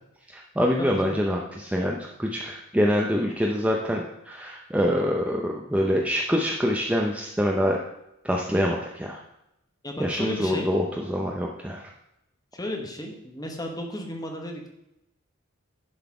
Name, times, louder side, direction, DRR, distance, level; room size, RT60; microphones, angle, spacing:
voice 1, 0.3-7.8 8.2-9.2 10.0-11.9, equal, 5° right, 0 dB, 0.5 m, -25 dB
voice 2, 0.8-1.1 9.8-10.7 12.5-14.7, left 1 dB, 15° left, 2 dB, 1.1 m, -34 dB
10.5 x 4.0 x 4.8 m, 0.85 s
head